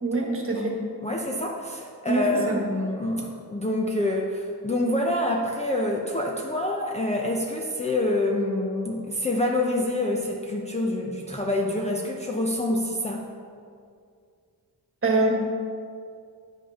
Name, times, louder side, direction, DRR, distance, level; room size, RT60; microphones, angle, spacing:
voice 1, 0.0-0.8 2.0-2.6 15.0-15.3, right 2 dB, 30° right, 0 dB, 1.4 m, -24 dB
voice 2, 1.0-13.3, left 1 dB, 15° left, -1 dB, 0.6 m, -27 dB
9.3 x 5.9 x 5.6 m, 2.3 s
wide cardioid pair, 155°, 41 cm